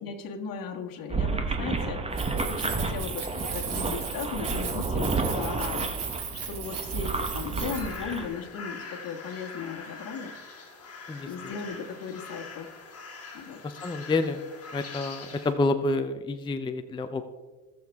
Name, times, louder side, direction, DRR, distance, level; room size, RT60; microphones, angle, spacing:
voice 1, 0.0-2.2 2.5-5.9 6.3-10.4 11.3-12.7 13.3-13.6, left 5 dB, 50° left, 2 dB, 1.7 m, -37 dB
sound 1, 1.1-8.3, right 3 dB, 15° right, 1.0 m, -31 dB
Keys jangling, 2.0-8.2, right 7 dB, 65° right, 2.6 m, -37 dB
sound 2, 6.6-15.5, left 4 dB, 30° left, 2.8 m, -43 dB
voice 2, 13.6-14.4 14.7-17.2, left 2 dB, 10° left, 8 dB, 0.5 m, -28 dB
18.5 x 6.8 x 3.5 m, 1.3 s
cardioid pair, 115°, 44 cm